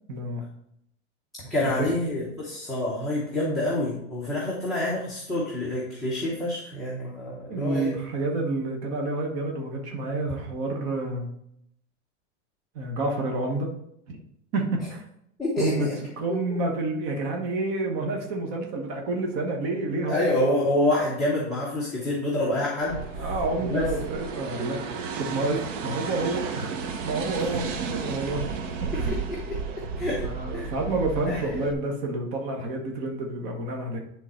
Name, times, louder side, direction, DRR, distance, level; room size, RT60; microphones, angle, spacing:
voice 1, 0.1-0.4 1.6-1.7 7.5-11.3 12.7-13.7 14.1-14.2 14.5-15.0 15.6-15.9 16.2-20.3 23.2-24.8 25.2-28.4 28.9-29.1 30.2-34.0, right 2 dB, 35° right, 1 dB, 1.2 m, -29 dB
voice 2, 1.4-7.9 15.4-16.0 16.3-16.4 20.1-23.3 23.6-23.8 27.5-28.1 28.9-30.3 30.5-30.7 31.3-31.6, left 1 dB, ahead, -8 dB, 0.9 m, -28 dB
sound 1, 22.8-31.7, right 5 dB, 90° right, 1.1 m, -33 dB
9.9 x 3.9 x 4.3 m, 0.75 s
supercardioid pair, 175°, 36 cm